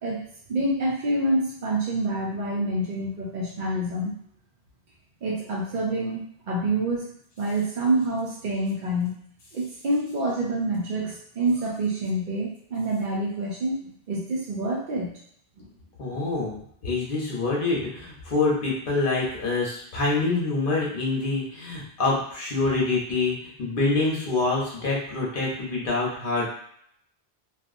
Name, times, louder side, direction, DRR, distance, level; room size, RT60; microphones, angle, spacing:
voice 1, 0.0-4.1 5.2-9.1 9.5-15.1 15.6-15.7, right 1 dB, 55° right, -4 dB, 0.6 m, -27 dB
voice 2, 16.0-26.5, left 3 dB, 60° left, -3 dB, 1.0 m, -26 dB
2.8 x 2.4 x 2.5 m, 0.66 s
omnidirectional pair, 1.1 m